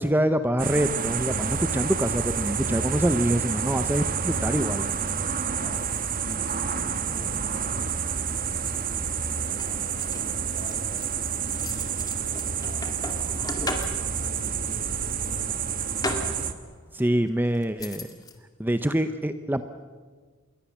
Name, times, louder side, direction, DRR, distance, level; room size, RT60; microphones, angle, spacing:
voice 1, 0.0-4.9 16.9-18.1 18.6-19.6, right 1 dB, 10° right, 10 dB, 0.7 m, -25 dB
sound 1, 0.6-16.5, right 6 dB, 40° right, 1.3 m, -29 dB
voice 2, 5.6-15.8, left 1 dB, 45° left, 3 dB, 5.3 m, -47 dB
sound 2, 9.6-14.4 15.4-16.8 17.4-18.3, left 2 dB, 20° left, 2.1 m, -36 dB
27.5 x 22.0 x 7.3 m, 1.5 s
head